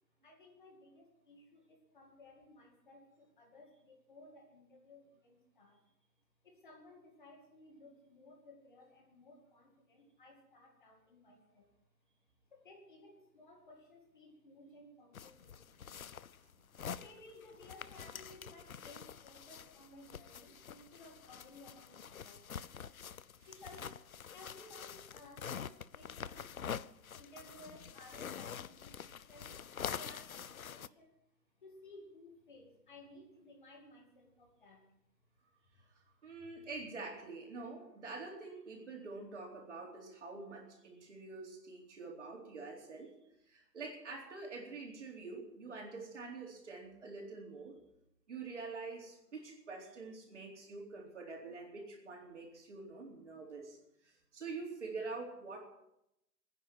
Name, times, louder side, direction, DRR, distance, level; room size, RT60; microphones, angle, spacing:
voice 1, 0.2-5.8 6.4-11.7 12.5-16.1 16.9-22.5 23.5-31.1 31.6-34.9 36.4-36.5, left 1 dB, 30° left, 1 dB, 2.3 m, -58 dB
sound 1, 15.1-30.9, left 8 dB, 55° left, 0.6 m, -46 dB
voice 2, 36.2-43.1 43.5-47.8 48.3-53.8 54.0-55.7, right 3 dB, 45° right, 0 dB, 4.1 m, -46 dB
21.5 x 10.0 x 6.2 m, 0.81 s
hypercardioid pair, 175°, 50 cm